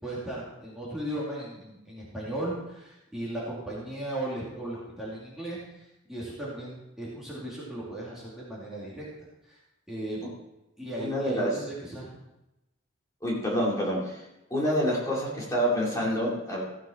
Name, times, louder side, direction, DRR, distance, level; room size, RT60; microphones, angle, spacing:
voice 1, 0.0-9.0 9.4-9.6 9.9-10.3 10.8-12.1, right 1 dB, ahead, -7 dB, 2.4 m, -36 dB
voice 2, 11.0-11.5 13.2-14.2 14.5-16.6, equal, 15° left, -5 dB, 2.6 m, -27 dB
14.5 x 7.6 x 4.4 m, 0.93 s
head